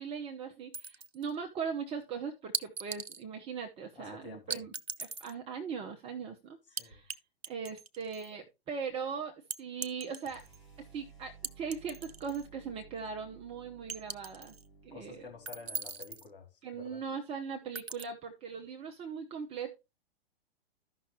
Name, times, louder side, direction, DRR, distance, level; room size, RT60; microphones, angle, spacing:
voice 1, 0.0-4.7 5.0-7.2 7.5-10.4 10.8-14.5 14.8-15.2 16.6-19.7, right 6 dB, 20° right, 0.8 m, -40 dB
sound 1, 0.7-1.3 2.5-3.2 4.5-5.3 6.8-7.2 7.4-8.3 9.5-10.6 11.4-12.5 12.8-12.9 13.9-14.6 15.5-16.3 17.8-18.0, right 5 dB, 85° right, 0.6 m, -39 dB
voice 2, 3.9-4.6 6.7-7.0 14.9-17.0, left 5 dB, 60° left, 3.3 m, -50 dB
sound 2, 10.2-16.4, right 5 dB, 85° left, 5.2 m, -57 dB
13.5 x 5.7 x 3.1 m
figure-of-eight pair, 110°, 30 cm